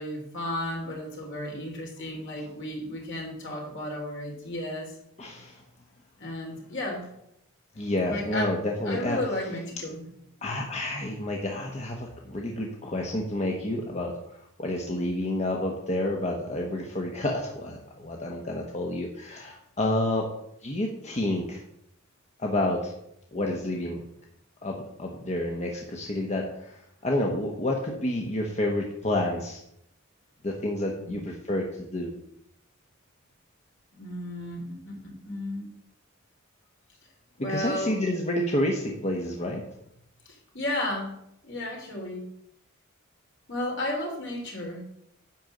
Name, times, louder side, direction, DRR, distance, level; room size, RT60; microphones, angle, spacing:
voice 1, 0.0-5.0 6.2-7.1 8.0-8.5 8.8-10.0 12.6-12.7 31.0-31.2 34.0-35.7 37.4-38.0 40.2-41.2 41.4-42.2 43.5-44.8, left 1 dB, 60° left, -1 dB, 3.4 m, -33 dB
voice 2, 5.2-5.6 7.8-9.2 10.4-20.3 20.6-21.6 22.4-22.9 23.3-24.0 24.6-29.6 30.4-32.1 37.5-39.6, left 1 dB, 35° left, 0 dB, 1.2 m, -29 dB
10.5 x 4.4 x 7.8 m, 0.76 s
head